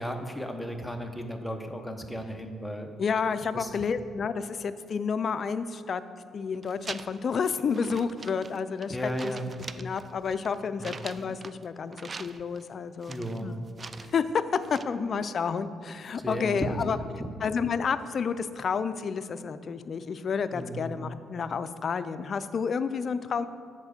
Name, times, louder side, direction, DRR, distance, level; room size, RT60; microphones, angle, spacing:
voice 1, 0.0-2.9 3.5-3.7 8.9-9.5 10.8-11.0 13.1-13.5 16.2-17.3 20.5-20.9, equal, 5° left, 4 dB, 0.8 m, -34 dB
voice 2, 3.0-6.0 6.3-9.3 9.8-13.6 14.0-14.2 14.7-17.0 17.4-23.4, left 6 dB, 50° left, 12 dB, 0.4 m, -30 dB
sound 1, 6.6-7.4 7.7-8.9 9.2-11.6 11.9-12.6 13.0-14.2 14.6-14.8, right 4 dB, 35° right, 0.3 m, -43 dB
7.2 x 4.3 x 6.6 m, 2.3 s
cardioid pair, 90°, 0 cm